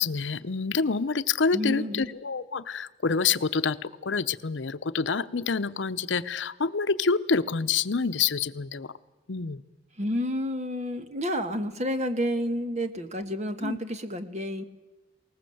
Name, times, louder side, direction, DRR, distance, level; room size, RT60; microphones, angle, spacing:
voice 1, 0.0-8.9 9.3-9.6 13.6-13.8, left 5 dB, 75° left, 13 dB, 0.7 m, -27 dB
voice 2, 1.5-2.1 10.0-14.6, equal, 40° right, 9 dB, 1.4 m, -30 dB
20.5 x 19.0 x 7.8 m, 1.2 s
head